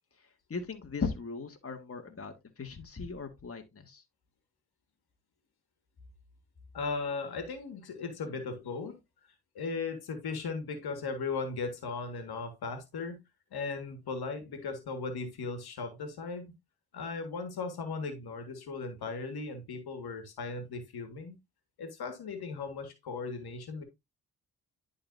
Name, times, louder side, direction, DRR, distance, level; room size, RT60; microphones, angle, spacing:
voice 1, 0.5-4.0, left 4 dB, 35° left, 1.6 m, -38 dB
voice 2, 6.7-9.0 9.6-13.2 13.5-16.5 16.9-21.4 21.8-23.8, left 4 dB, 70° left, 1.7 m, -37 dB
11.0 x 3.9 x 2.6 m
supercardioid pair, 50°, 40 cm